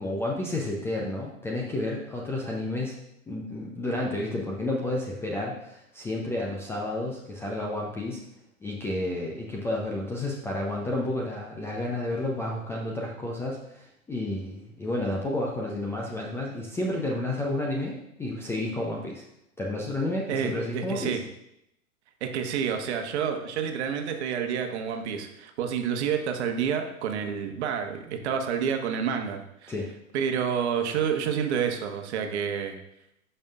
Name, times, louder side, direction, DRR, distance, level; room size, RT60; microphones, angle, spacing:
voice 1, 0.0-3.0 3.3-8.2 8.6-19.2 19.6-21.2 29.7-29.9, left 1 dB, 5° left, -2 dB, 0.4 m, -31 dB
voice 2, 20.3-21.2 22.2-29.7 30.1-32.7, right 7 dB, 50° right, 5 dB, 1.1 m, -29 dB
13.5 x 5.6 x 2.4 m, 0.80 s
figure-of-eight pair, 110°, 42 cm